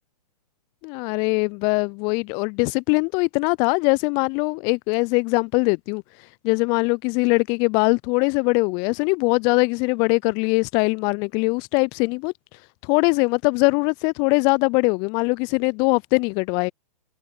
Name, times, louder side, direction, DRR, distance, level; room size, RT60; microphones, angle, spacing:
voice 1, 0.8-6.0 6.4-12.3 12.8-16.7, left 31 dB, 20° left, 0.4 m, -21 dB
figure-of-eight pair, 120°, 21 cm